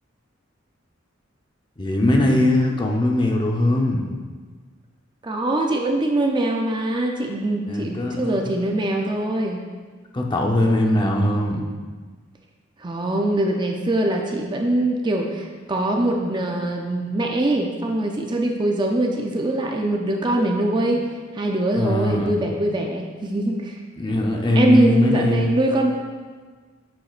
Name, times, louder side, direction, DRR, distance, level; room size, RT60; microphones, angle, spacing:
voice 1, 1.8-4.1 7.7-8.5 10.1-11.6 20.9-21.0 21.8-22.3 24.0-25.6, left 1 dB, 25° left, 1 dB, 0.8 m, -20 dB
voice 2, 5.2-9.6 12.8-21.1 21.3-23.7 24.6-25.9, right 1 dB, 25° right, 1 dB, 0.5 m, -22 dB
9.3 x 7.7 x 2.5 m, 1.5 s
head